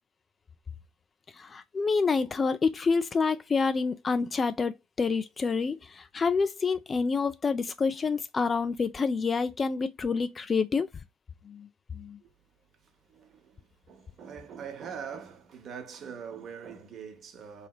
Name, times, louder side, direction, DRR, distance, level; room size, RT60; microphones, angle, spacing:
voice 1, 1.4-10.9 11.5-11.7 11.9-12.2, left 4 dB, 30° left, 0.4 m, -28 dB
voice 2, 12.8-17.7, right 7 dB, 45° right, 0.9 m, -43 dB
3.2 x 2.8 x 2.3 m
hypercardioid pair, 75°, 0 cm